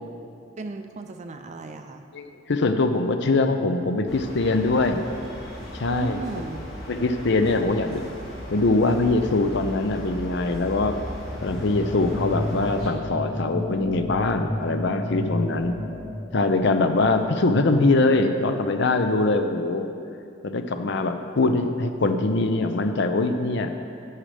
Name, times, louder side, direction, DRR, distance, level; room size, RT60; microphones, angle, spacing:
voice 1, 0.6-2.1 5.9-6.7, right 2 dB, 35° right, 6 dB, 0.4 m, -35 dB
voice 2, 2.1-5.0 5.7-6.2 6.9-8.0 8.5-11.0 11.4-15.7 16.3-19.9 20.4-23.7, left 2 dB, 65° left, 7 dB, 0.6 m, -22 dB
sound 1, 4.1-12.9, equal, 80° left, 2.4 m, -37 dB
sound 2, 11.4-18.1, left 1 dB, 10° left, 0.9 m, -32 dB
11.5 x 8.8 x 3.4 m, 2.5 s
head